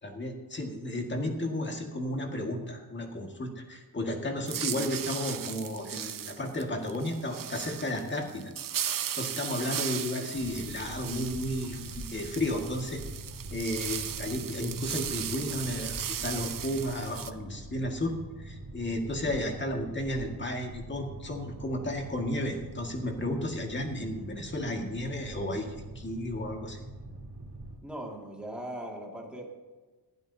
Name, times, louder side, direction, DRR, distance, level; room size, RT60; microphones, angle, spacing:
voice 1, 0.0-8.5 8.9-13.0 13.5-25.7 26.0-26.9, left 1 dB, 30° left, 2 dB, 2.0 m, -33 dB
sound 1, 4.5-17.3, right 9 dB, 55° right, 0.7 m, -37 dB
Boat Water vehicle, 10.3-27.8, right 2 dB, 85° right, 2.2 m, -44 dB
voice 2, 27.8-29.4, right 1 dB, 5° right, -1 dB, 2.2 m, -39 dB
19.0 x 12.5 x 2.8 m, 1.3 s
wide cardioid pair, 155°, 39 cm